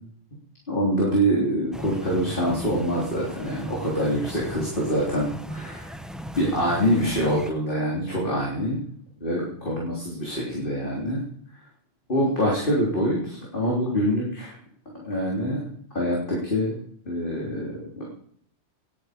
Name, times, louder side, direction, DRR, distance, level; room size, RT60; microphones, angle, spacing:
voice 1, 0.7-5.9 6.3-8.8 9.2-11.2 12.1-14.6 14.9-15.7 15.9-16.8 17.1-18.1, equal, 40° left, -4 dB, 3.7 m, -25 dB
sound 1, 1.7-7.5, right 1 dB, ahead, 0.7 m, -37 dB
19.5 x 9.9 x 5.1 m, 0.64 s
omnidirectional pair, 1.3 m